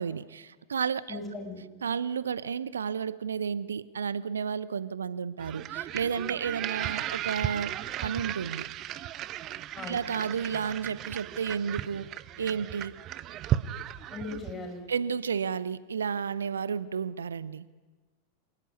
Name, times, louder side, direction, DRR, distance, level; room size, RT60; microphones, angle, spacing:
voice 1, 0.0-1.2 1.8-8.7 9.9-12.1 12.4-12.9 14.9-17.6, right 6 dB, 70° right, 0.7 m, -32 dB
voice 2, 1.1-1.6 9.7-10.0 14.1-14.9, left 3 dB, 20° left, 5.8 m, -38 dB
sound 1, 5.4-14.7, right 12 dB, 35° right, 0.9 m, -35 dB
25.5 x 19.5 x 9.9 m
figure-of-eight pair, 90°, 0 cm